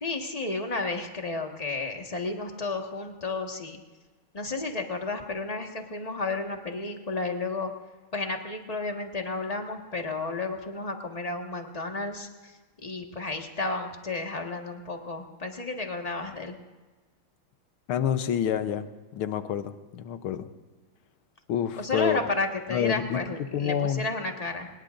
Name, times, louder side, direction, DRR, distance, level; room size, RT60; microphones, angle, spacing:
voice 1, 0.0-3.8 4.3-7.7 8.1-16.6 21.8-24.7, left 3 dB, 20° left, 2 dB, 1.5 m, -32 dB
voice 2, 17.9-18.9 19.1-20.5 21.5-22.3 22.7-23.2 23.5-24.0, left 9 dB, 85° left, 10 dB, 1.7 m, -28 dB
25.0 x 20.5 x 2.6 m, 1.3 s
omnidirectional pair, 2.3 m